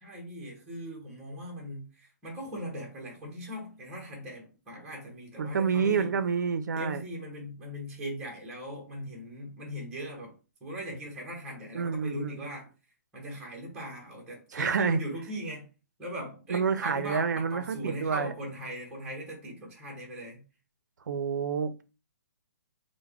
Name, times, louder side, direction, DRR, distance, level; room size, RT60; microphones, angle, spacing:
voice 1, 0.0-6.1 6.8-12.7 13.1-15.6 16.0-20.4, equal, 10° right, 0.8 m, -40 dB
voice 2, 5.4-7.0 11.7-12.4 14.5-15.0 16.5-18.3 21.1-21.8, right 6 dB, 85° right, 0.5 m, -28 dB
3.3 x 2.1 x 3.4 m
hypercardioid pair, 175°, 9 cm